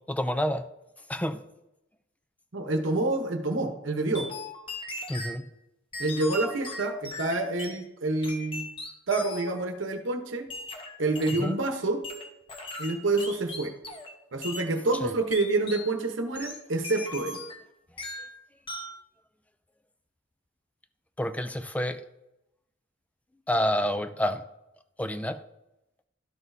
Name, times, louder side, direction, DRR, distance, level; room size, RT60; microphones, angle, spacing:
voice 1, 0.1-0.6 1.1-1.4 5.1-5.4 11.3-11.6 15.0-15.1 21.2-22.0 23.5-24.4 25.0-25.4, equal, 5° left, 11 dB, 0.4 m, -28 dB
voice 2, 2.5-4.3 6.0-8.7 9.1-10.5 11.0-12.0 12.8-13.7 14.3-17.4, right 2 dB, 65° right, 5 dB, 1.0 m, -28 dB
sound 1, 4.1-5.4 5.9-7.8 8.2-9.6 10.5-11.6 12.0-14.1 14.4-14.7 15.3-15.9 16.4-17.7 18.0-18.4 18.7-19.0, left 2 dB, 25° left, 0.9 m, -39 dB
12.5 x 6.1 x 2.7 m, 0.89 s
head